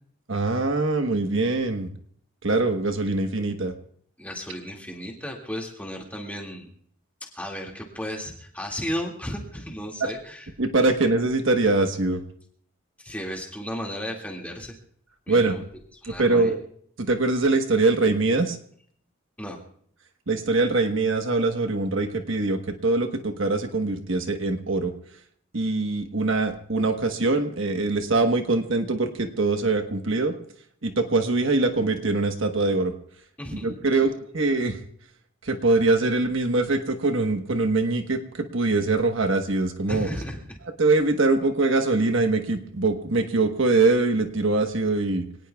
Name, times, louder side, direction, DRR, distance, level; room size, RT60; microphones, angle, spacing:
voice 1, 0.3-1.9 2.4-3.7 10.0-10.2 10.6-12.2 15.3-15.6 16.0-16.6 17.1-18.6 20.3-24.9 25.5-30.3 30.8-32.9 33.5-34.8 35.4-40.2 40.8-45.3, right 3 dB, 65° right, 6 dB, 1.2 m, -23 dB
voice 2, 4.2-6.7 7.4-10.5 13.0-14.8 15.3-15.6 16.0-16.5 19.4-19.6 33.4-33.7 39.9-40.6, equal, 5° left, -1 dB, 2.1 m, -34 dB
26.0 x 18.5 x 2.3 m, 0.62 s
head